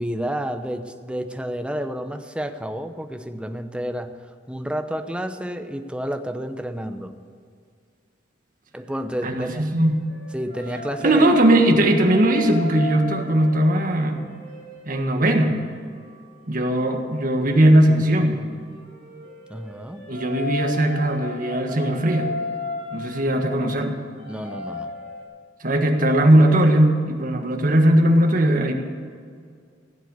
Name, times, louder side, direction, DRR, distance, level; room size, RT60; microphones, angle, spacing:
voice 1, 0.0-4.2 4.5-7.1 8.7-9.6 10.3-11.3 19.5-20.0 24.3-24.9, equal, 5° right, 7 dB, 0.7 m, -30 dB
sound 1, 9.0-17.3 18.5-25.2, left 3 dB, 55° left, 4.1 m, -36 dB
voice 2, 9.2-10.0 11.0-14.3 14.8-15.6 16.5-18.4 20.0-22.3 22.9-24.0 25.6-28.7, right 1 dB, 50° right, 4 dB, 1.6 m, -19 dB
16.0 x 7.7 x 8.2 m, 2.2 s
head